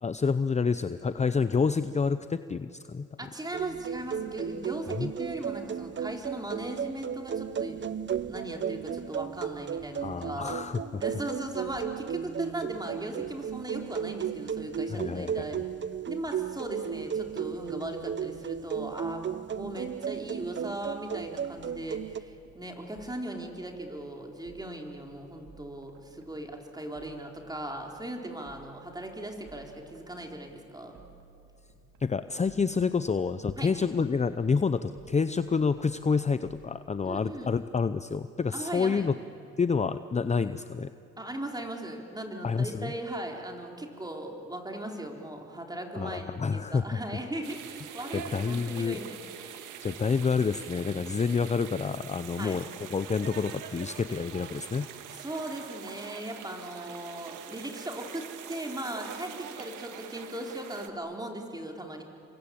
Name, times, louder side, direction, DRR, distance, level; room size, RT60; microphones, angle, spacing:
voice 1, 0.0-3.1 5.0-5.1 10.0-11.0 14.9-15.6 32.0-39.1 39.6-40.9 42.4-42.9 45.9-46.8 48.1-49.0 49.8-52.6 52.9-54.9, left 5 dB, 25° left, 12 dB, 0.7 m, -28 dB
voice 2, 3.2-10.6 11.0-15.6 16.1-31.0 33.6-33.7 37.0-37.5 38.5-39.1 41.2-49.2 49.5-49.7 52.4-52.6 55.1-62.0, right 1 dB, 15° right, 2 dB, 4.2 m, -38 dB
sound 1, 3.5-22.2, right 8 dB, 40° right, 0.7 m, -35 dB
sound 2, 21.5-39.2, right 5 dB, 70° right, 3.4 m, -58 dB
sound 3, 47.4-60.9, right 9 dB, 90° right, 2.0 m, -44 dB
29.0 x 24.0 x 8.7 m, 2.9 s
cardioid pair, 90°, 30 cm